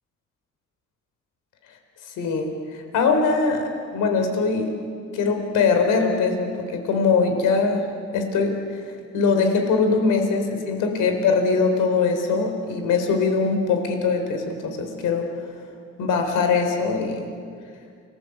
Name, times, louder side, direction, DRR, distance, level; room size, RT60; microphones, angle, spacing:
voice 1, 2.2-4.7 5.1-7.9 8.1-8.8 9.1-15.3 16.0-17.3, left 4 dB, 90° left, 5 dB, 4.3 m, -22 dB
30.0 x 21.0 x 8.1 m, 2.2 s
cardioid pair, 90°, 30 cm